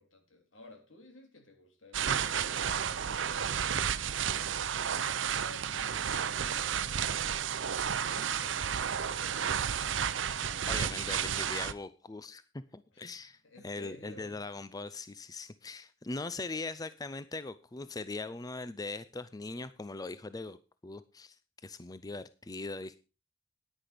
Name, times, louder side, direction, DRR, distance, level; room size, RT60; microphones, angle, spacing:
voice 1, 0.0-4.1 4.4-7.4 8.1-8.8 12.9-14.6, left 1 dB, 80° left, 4 dB, 3.4 m, -55 dB
sound 1, 1.9-11.7, right 8 dB, 70° right, 0.7 m, -32 dB
voice 2, 10.7-12.4 12.7-20.6 20.8-21.4 21.6-23.0, left 3 dB, 20° left, 14 dB, 0.5 m, -40 dB
10.0 x 9.9 x 5.1 m, 0.33 s
head